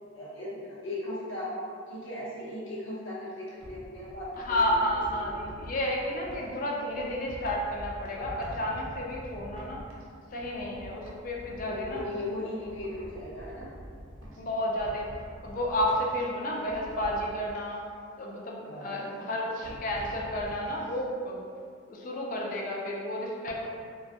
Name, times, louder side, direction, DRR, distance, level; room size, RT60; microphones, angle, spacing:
voice 1, 0.1-1.6 1.9-4.8 5.2-5.3 11.6-13.7 18.6-19.3, left 1 dB, 80° left, -7 dB, 0.7 m, -38 dB
sound 1, 3.3-6.4 6.9-10.1 10.4-12.2 12.5-14.4 14.7-16.2 16.6-17.6 19.5-20.5 20.9-21.0, equal, 80° right, 0.5 m, -45 dB
voice 2, 4.4-9.8 10.3-12.1 14.4-15.1 15.4-17.8 18.2-21.5 21.8-23.7, left 1 dB, 45° left, -2 dB, 0.3 m, -31 dB
2.2 x 2.0 x 2.7 m, 2.2 s
head